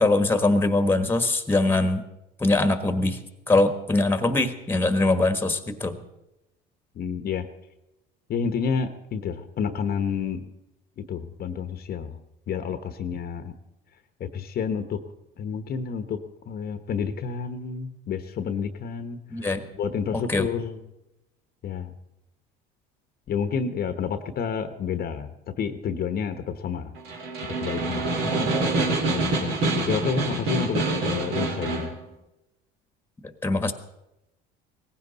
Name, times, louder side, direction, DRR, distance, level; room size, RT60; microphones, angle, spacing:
voice 1, 0.0-2.0 2.4-3.2 3.5-6.0 19.3-19.6 20.1-20.5 28.4-28.5 33.4-33.7, left 2 dB, 10° left, 9 dB, 1.4 m, -22 dB
voice 2, 6.9-7.5 8.3-10.5 11.0-12.2 12.5-13.5 14.2-15.0 15.4-16.2 16.5-19.5 19.7-20.8 21.6-21.9 23.3-26.9 27.6-28.1 29.1-29.5 29.9-31.9, left 6 dB, 45° left, 9 dB, 1.1 m, -29 dB
Snare drum, 27.0-32.0, right 2 dB, 70° right, 3.3 m, -26 dB
18.0 x 15.5 x 4.1 m, 0.91 s
supercardioid pair, 100°, 21 cm